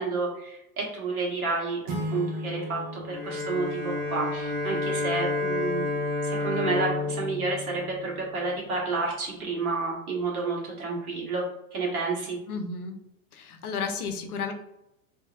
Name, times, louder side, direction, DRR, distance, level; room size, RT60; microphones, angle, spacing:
voice 1, 0.0-5.9 6.2-11.4 11.7-12.4, right 3 dB, 85° right, -3 dB, 1.2 m, -30 dB
sound 1, 1.9-4.7, equal, 65° right, 0.9 m, -36 dB
Bowed string instrument, 3.1-8.6, left 2 dB, 10° left, 0.4 m, -30 dB
voice 2, 12.5-13.0 13.3-14.5, left 5 dB, 90° left, 5 dB, 0.6 m, -32 dB
2.8 x 2.7 x 2.3 m, 0.86 s
hypercardioid pair, 100°, 43 cm